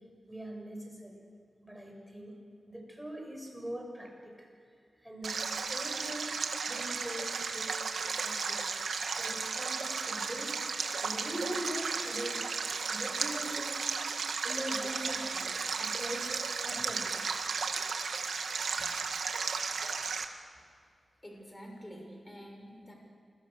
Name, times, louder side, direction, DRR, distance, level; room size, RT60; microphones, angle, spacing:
voice 1, 0.3-1.1 1.6-2.3 2.7-4.5 5.0-6.3 6.7-7.8 8.2-8.6 9.2-10.6 11.0-12.4 12.9-13.8 14.4-17.3 18.8-18.9, equal, 5° right, 0 dB, 6.8 m, -42 dB
Stream, 5.2-20.2, right 5 dB, 90° right, 1.9 m, -34 dB
voice 2, 21.2-22.9, equal, 15° left, 1 dB, 6.3 m, -47 dB
28.0 x 23.0 x 6.7 m, 2.3 s
wide cardioid pair, 115°, 0 cm